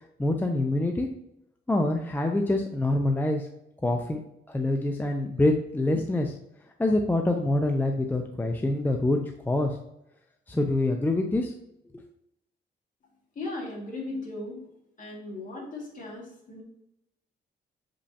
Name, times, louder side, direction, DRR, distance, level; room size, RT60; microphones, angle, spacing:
voice 1, 0.2-1.1 1.7-3.5 3.8-4.2 4.5-6.3 6.8-9.2 9.5-9.8 10.5-11.5, left 2 dB, 10° left, 3 dB, 0.5 m, -25 dB
voice 2, 13.4-14.7 15.0-16.6, left 2 dB, 45° left, -2 dB, 2.3 m, -37 dB
6.7 x 5.2 x 2.8 m, 0.83 s
cardioid pair, 120°, 19 cm